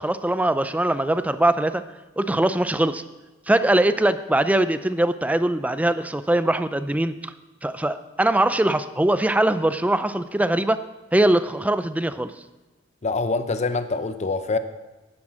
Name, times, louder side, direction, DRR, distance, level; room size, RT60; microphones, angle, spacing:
voice 1, 0.0-1.8 2.2-3.0 3.5-7.3 7.6-10.8 11.1-12.3, right 1 dB, 10° right, 12 dB, 0.4 m, -21 dB
voice 2, 13.0-14.6, left 3 dB, 35° left, 11 dB, 0.7 m, -25 dB
10.5 x 9.7 x 6.2 m, 1.1 s
head